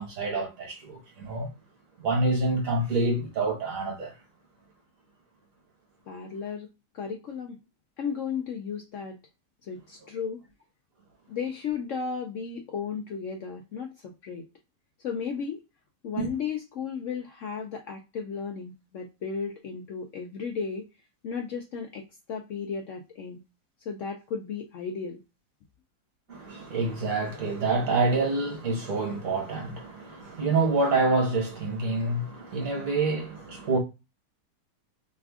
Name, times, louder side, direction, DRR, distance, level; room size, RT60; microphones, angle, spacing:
voice 1, 0.0-1.5 2.0-4.1 16.2-16.3 26.3-33.8, right 3 dB, 55° right, 1.7 m, -27 dB
voice 2, 6.1-6.7 6.9-7.6 8.0-9.2 9.6-10.4 11.3-14.4 15.0-15.6 16.0-20.9 21.2-22.0 22.3-23.4 23.9-25.2, left 6 dB, 65° left, 0.8 m, -34 dB
3.3 x 2.3 x 3.5 m
omnidirectional pair, 1.7 m